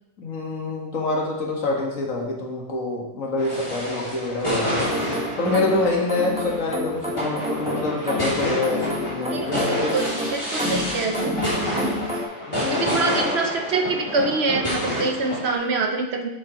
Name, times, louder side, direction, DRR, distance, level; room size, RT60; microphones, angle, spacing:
voice 1, 0.2-4.9 5.4-10.0 12.5-13.1, left 2 dB, 90° left, -2 dB, 2.0 m, -26 dB
sound 1, 3.4-15.6, equal, 20° left, 2.9 m, -28 dB
sound 2, 4.8-12.2, left 1 dB, 5° right, 1.0 m, -30 dB
voice 2, 9.3-12.1 12.7-16.3, right 3 dB, 60° right, 4 dB, 1.1 m, -26 dB
8.2 x 7.3 x 3.1 m, 0.88 s
omnidirectional pair, 1.3 m